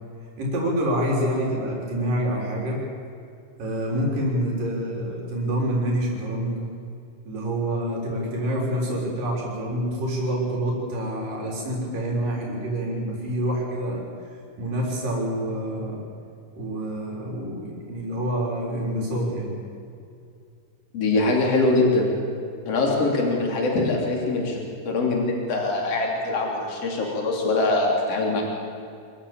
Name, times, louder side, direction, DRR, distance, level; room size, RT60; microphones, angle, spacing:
voice 1, 0.4-2.8 3.6-6.6 7.3-14.0 14.6-16.0 16.6-19.5, right 1 dB, 90° right, -2 dB, 5.6 m, -27 dB
voice 2, 20.9-22.1 22.7-28.4, left 2 dB, 50° left, -1 dB, 4.3 m, -23 dB
26.0 x 14.5 x 8.8 m, 2.5 s
omnidirectional pair, 3.7 m